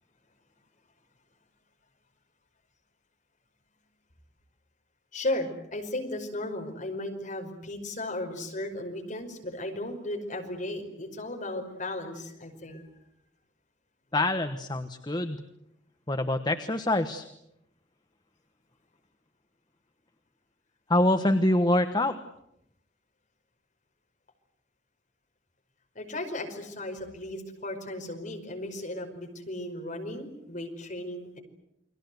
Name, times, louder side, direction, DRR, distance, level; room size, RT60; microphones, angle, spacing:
voice 1, 5.1-12.8 26.0-31.4, left 1 dB, 40° left, 3 dB, 5.3 m, -35 dB
voice 2, 14.1-15.4 16.1-17.3 20.9-22.2, left 1 dB, 20° left, 8 dB, 1.2 m, -25 dB
29.5 x 23.0 x 8.0 m, 0.79 s
head